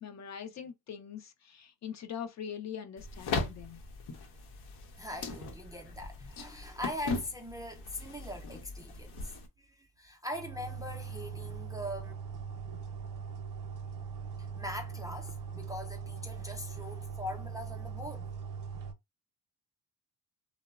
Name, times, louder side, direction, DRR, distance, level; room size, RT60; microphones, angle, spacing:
voice 1, 0.0-3.8, left 8 dB, 45° left, 0.5 m, -42 dB
sound 1, 3.0-9.5, left 3 dB, 85° left, 0.8 m, -39 dB
voice 2, 5.0-12.1 14.4-18.3, left 1 dB, 10° right, 0.4 m, -42 dB
sound 2, 10.3-18.9, right 6 dB, 55° right, 0.6 m, -41 dB
2.9 x 2.0 x 2.3 m
cardioid pair, 135°, 38 cm